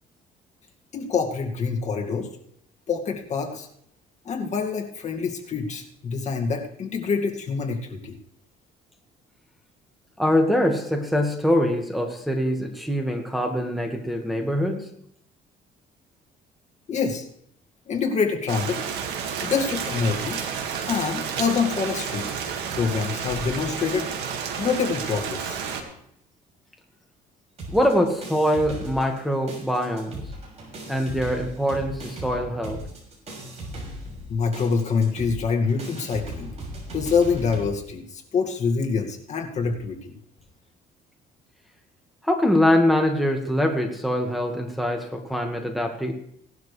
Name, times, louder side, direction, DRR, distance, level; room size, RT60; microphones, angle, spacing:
voice 1, 0.9-2.3 2.9-3.7 4.3-8.1 16.9-17.2 17.9-18.8 19.4-20.4 20.9-22.3 22.8-24.1 24.6-25.6 34.1-36.5 36.9-40.1, left 5 dB, 45° left, 2 dB, 2.1 m, -26 dB
voice 2, 10.2-14.9 27.7-30.2 30.9-32.8 42.2-46.1, equal, ahead, 1 dB, 1.7 m, -23 dB
Rain, 18.5-25.8, right 7 dB, 85° right, 2.0 m, -31 dB
sound 1, 27.6-29.2 29.5-37.7, right 1 dB, 40° right, 6.4 m, -37 dB
18.0 x 12.0 x 3.3 m, 0.68 s
cardioid pair, 110°, 17 cm